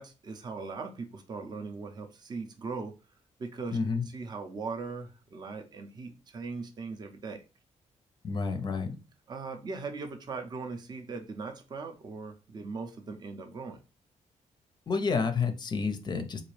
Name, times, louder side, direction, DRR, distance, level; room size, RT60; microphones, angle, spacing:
voice 1, 0.0-2.9 3.4-3.8 4.1-7.4 9.3-13.8, right 4 dB, 35° right, 5 dB, 0.5 m, -39 dB
voice 2, 3.7-4.0 8.2-8.9 14.9-16.4, left 5 dB, 35° left, 8 dB, 0.5 m, -29 dB
3.9 x 2.5 x 3.1 m, 0.32 s
wide cardioid pair, 150°, 13 cm